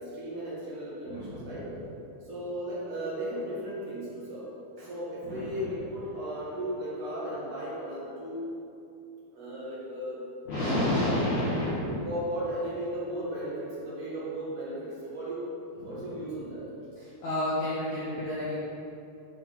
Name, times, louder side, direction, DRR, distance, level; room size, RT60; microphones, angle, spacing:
voice 1, 0.0-1.7 2.2-4.5 4.8-8.5 9.3-10.2 10.8-10.9 11.4-15.4 15.8-16.6, right 1 dB, 50° right, -8 dB, 1.7 m, -36 dB
voice 2, 1.1-1.6 5.2-5.6 10.5-12.0 15.8-16.1 17.0-18.5, left 1 dB, 70° left, -9 dB, 1.8 m, -30 dB
10.5 x 3.8 x 4.0 m, 2.7 s
omnidirectional pair, 4.7 m